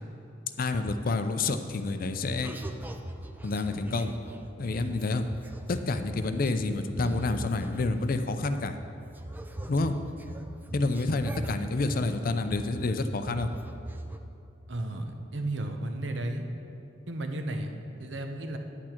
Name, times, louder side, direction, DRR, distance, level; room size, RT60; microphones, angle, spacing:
voice 1, 0.6-2.5 3.4-4.1 4.6-5.3 5.7-8.8 9.7-10.0 10.7-13.5, left 3 dB, 50° left, 9 dB, 0.5 m, -28 dB
sound 1, 2.4-8.8 9.1-13.0 13.2-14.2, right 1 dB, 10° right, 0.4 m, -40 dB
voice 2, 14.7-16.4 17.1-18.6, right 1 dB, 70° right, 5 dB, 0.9 m, -34 dB
9.9 x 8.5 x 4.4 m, 2.8 s
head